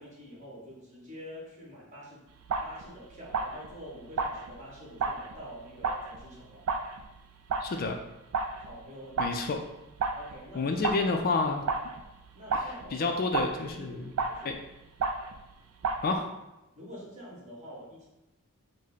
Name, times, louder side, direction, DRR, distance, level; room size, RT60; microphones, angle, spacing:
voice 1, 0.0-2.2 2.6-6.7 8.6-9.3 10.2-10.7 12.3-13.2 13.7-14.7 16.7-18.1, equal, 35° right, -5 dB, 1.4 m, -46 dB
sound 1, 2.4-8.9 9.2-15.6 15.8-16.2, right 4 dB, 75° right, 0.4 m, -34 dB
voice 2, 7.6-8.0 9.2-9.6 10.5-11.6 12.5-12.6 12.9-14.1 14.5-14.6 16.0-16.3, left 3 dB, 40° left, 4 dB, 0.4 m, -29 dB
5.0 x 2.1 x 4.0 m, 0.97 s
head